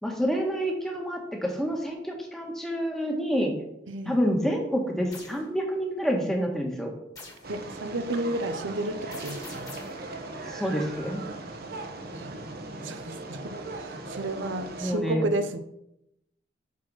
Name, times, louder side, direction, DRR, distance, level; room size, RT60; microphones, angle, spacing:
voice 1, 0.0-3.5 4.0-6.9 10.5-11.2 14.8-15.3, equal, ahead, 0 dB, 1.5 m, -28 dB
voice 2, 3.9-4.2 7.5-9.7 12.1-12.3 12.8-15.6, right 2 dB, 85° right, 9 dB, 0.8 m, -32 dB
sound 1, 5.1-5.4 7.2-7.5 9.1-10.0, left 3 dB, 20° left, 2.0 m, -44 dB
sound 2, 7.4-14.9, right 2 dB, 55° right, 1.1 m, -38 dB
9.4 x 4.3 x 6.2 m, 0.80 s
head